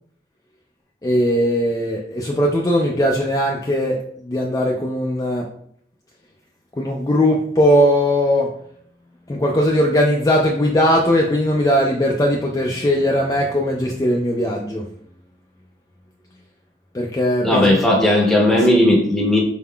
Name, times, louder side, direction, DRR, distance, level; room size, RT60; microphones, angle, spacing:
voice 1, 1.0-5.5 6.8-8.5 9.3-14.8 16.9-17.7, equal, 20° left, 0.3 m, -19 dB
voice 2, 17.4-19.4, left 1 dB, ahead, 0.7 m, -15 dB
4.6 x 3.6 x 2.2 m
head